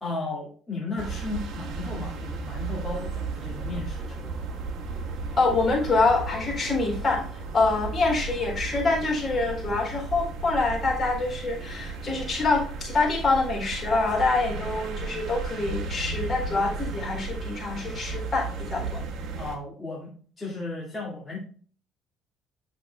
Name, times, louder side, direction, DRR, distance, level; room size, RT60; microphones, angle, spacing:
voice 1, 0.0-4.6 19.4-20.1 20.4-21.4, left 3 dB, 10° left, -6 dB, 2.1 m, -35 dB
sound 1, 1.0-19.6, right 4 dB, 60° right, 1.5 m, -34 dB
voice 2, 5.4-7.2 7.5-19.0, left 3 dB, 25° left, -2 dB, 4.1 m, -25 dB
9.1 x 6.6 x 2.4 m, 0.43 s
cardioid pair, 140°, 0 cm